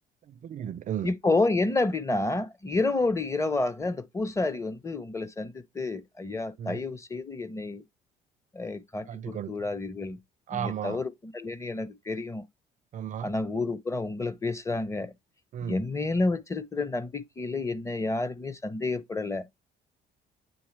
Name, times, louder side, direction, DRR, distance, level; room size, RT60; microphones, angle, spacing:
voice 1, 0.3-1.1 6.6-6.8 9.1-9.6 10.5-11.0 12.9-13.3 15.5-15.8, right 9 dB, 50° right, 0.5 m, -34 dB
voice 2, 1.0-7.8 8.5-10.2 10.5-11.1 11.3-12.5 13.2-15.1 15.6-19.5, left 3 dB, 15° left, 0.9 m, -29 dB
8.6 x 3.4 x 3.3 m
cardioid pair, 110°, 17 cm